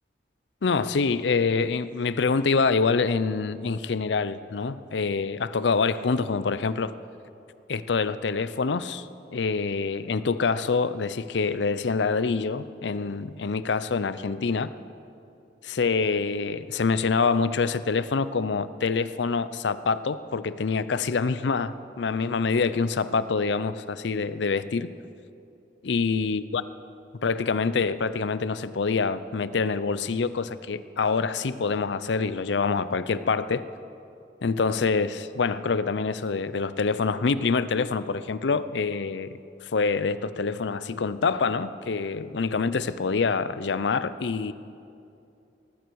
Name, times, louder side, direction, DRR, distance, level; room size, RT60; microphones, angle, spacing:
voice 1, 0.6-6.9 7.7-14.7 15.6-24.9 25.8-26.6 27.2-33.6 34.4-44.5, left 4 dB, 80° left, 15 dB, 0.5 m, -26 dB
18.5 x 15.0 x 4.7 m, 2.6 s
head